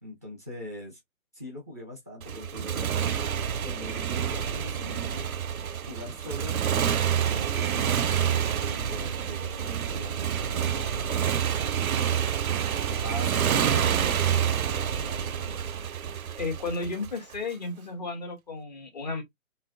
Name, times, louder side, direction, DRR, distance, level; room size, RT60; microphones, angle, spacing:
voice 1, 0.0-1.0 1.3-5.3 5.7-6.6 7.3-12.2 12.7-15.6, left 1 dB, 10° left, 0.6 m, -42 dB
Motorcycle, 2.2-17.4, right 8 dB, 75° right, 0.5 m, -28 dB
voice 2, 16.4-19.2, left 3 dB, 30° left, 1.0 m, -33 dB
3.2 x 3.0 x 2.5 m
figure-of-eight pair, 145°, 43 cm